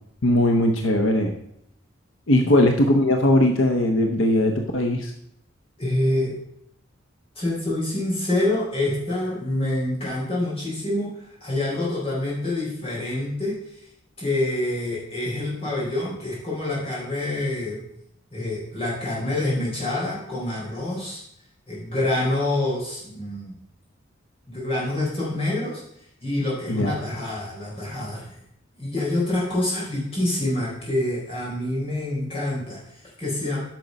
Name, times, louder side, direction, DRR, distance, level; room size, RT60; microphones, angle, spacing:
voice 1, 0.2-1.3 2.3-5.1 26.7-27.0, left 1 dB, 75° left, 4 dB, 0.9 m, -19 dB
voice 2, 5.8-6.4 7.4-13.8 14.2-17.8 18.3-21.2 21.7-23.5 24.5-25.8 26.2-28.3 28.8-33.6, left 1 dB, 30° left, -6 dB, 4.1 m, -26 dB
9.2 x 6.0 x 5.3 m, 0.73 s
head